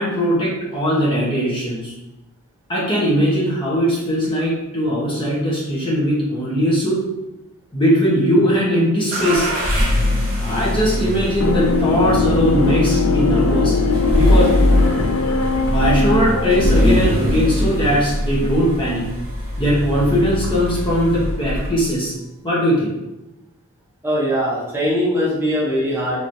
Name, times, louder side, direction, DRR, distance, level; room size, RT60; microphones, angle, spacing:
voice 1, 0.0-1.9 2.7-7.0 7.7-9.5 10.4-13.8 14.1-14.6 15.7-19.1 19.6-22.1 22.4-22.9, equal, 25° left, -7 dB, 0.9 m, -19 dB
sound 1, 9.1-22.0, left 1 dB, 45° right, 1.1 m, -21 dB
sound 2, 11.4-17.1, left 4 dB, 75° left, 0.4 m, -21 dB
voice 2, 24.0-26.3, equal, 10° right, -7 dB, 0.8 m, -21 dB
3.2 x 3.0 x 2.6 m, 0.97 s
head